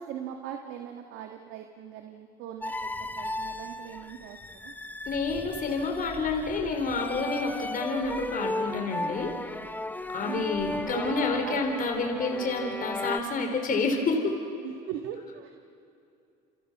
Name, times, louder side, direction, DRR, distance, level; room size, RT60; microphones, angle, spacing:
voice 1, 0.0-4.4 4.6-4.7 10.1-11.1 11.4-11.8 14.6-15.5, right 9 dB, 70° right, 4 dB, 1.9 m, -40 dB
sound 1, 2.6-13.2, left 2 dB, 10° left, 1.1 m, -36 dB
voice 2, 5.1-9.3 10.1-14.3, left 3 dB, 40° left, 3 dB, 4.1 m, -29 dB
29.5 x 28.5 x 6.2 m, 2.6 s
supercardioid pair, 95°, 21 cm